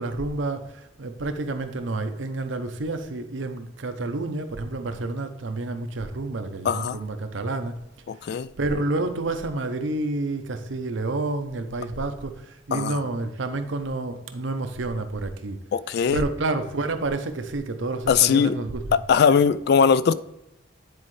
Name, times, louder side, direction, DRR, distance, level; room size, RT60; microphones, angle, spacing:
voice 1, 0.0-7.8 8.2-15.6 16.1-18.8, right 2 dB, 75° right, 0.7 m, -29 dB
voice 2, 6.6-7.0 8.1-8.5 12.7-13.0 15.7-16.2 18.1-18.6 18.9-20.1, left 6 dB, 55° left, 0.3 m, -20 dB
9.7 x 4.3 x 3.2 m
head